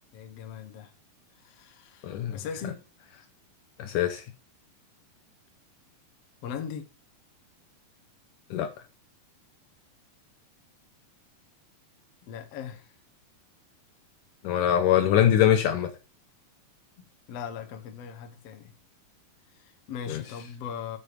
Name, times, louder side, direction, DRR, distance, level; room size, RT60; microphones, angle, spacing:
voice 1, 0.1-0.9 1.4-2.9 6.4-6.9 12.2-12.9 17.3-18.7 19.5-21.0, left 7 dB, 60° left, 1.8 m, -39 dB
voice 2, 2.0-2.4 3.8-4.2 8.5-8.7 14.4-15.9 20.1-20.2, left 10 dB, 75° left, 2.2 m, -23 dB
8.7 x 7.0 x 5.1 m
omnidirectional pair, 4.2 m